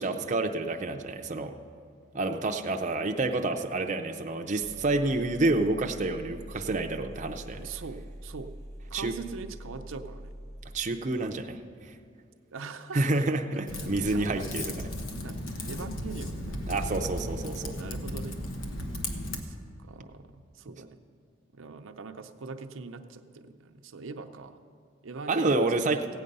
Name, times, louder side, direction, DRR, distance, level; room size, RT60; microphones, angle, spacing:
voice 1, 0.0-1.5 2.1-7.7 8.9-9.1 10.7-11.6 11.8-11.9 12.9-14.7 16.7-17.8 25.3-26.0, right 2 dB, 35° right, 4 dB, 0.5 m, -28 dB
sound 1, 4.6-10.8, equal, 15° left, 1.0 m, -45 dB
voice 2, 7.6-8.5 8.9-10.3 12.5-13.4 13.7-14.5 15.0-16.6 17.7-18.4 19.4-21.0 21.5-24.6 25.0-26.1, right 4 dB, 90° right, 6 dB, 0.6 m, -42 dB
Typing, 13.7-19.4, left 1 dB, 90° left, 1.1 m, -35 dB
16.0 x 8.7 x 5.4 m, 2.2 s
head